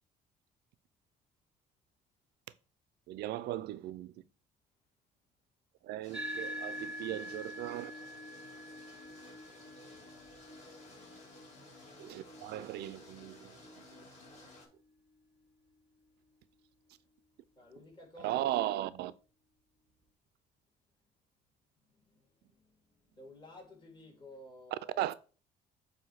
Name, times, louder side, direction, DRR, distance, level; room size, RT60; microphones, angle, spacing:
voice 1, 3.1-4.2 5.8-7.9 12.0-13.6 18.2-19.1 25.0-25.1, right 14 dB, 75° right, 0.5 m, -37 dB
sound 1, 6.0-14.7, left 1 dB, 40° left, 3.5 m, -55 dB
sound 2, 6.1-14.9, equal, 5° right, 1.1 m, -46 dB
voice 2, 17.6-18.7 21.8-25.1, left 1 dB, 25° left, 2.7 m, -54 dB
7.8 x 2.8 x 5.8 m
cardioid pair, 110°, 17 cm